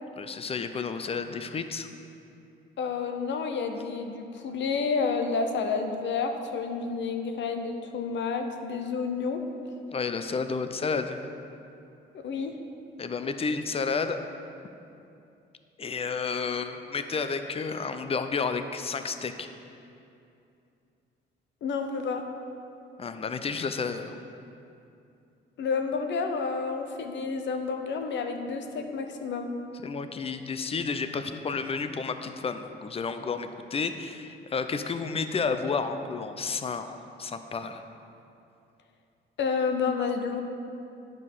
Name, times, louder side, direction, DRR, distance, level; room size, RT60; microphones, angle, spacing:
voice 1, 0.2-1.9 9.9-11.2 13.0-14.2 15.8-19.5 23.0-24.1 29.8-37.9, left 5 dB, 30° left, 9 dB, 0.6 m, -31 dB
voice 2, 2.8-9.4 12.2-12.5 21.6-22.2 25.6-29.5 39.4-40.4, left 5 dB, 65° left, 5 dB, 0.9 m, -30 dB
9.7 x 5.3 x 5.5 m, 2.7 s
cardioid pair, 90°, 20 cm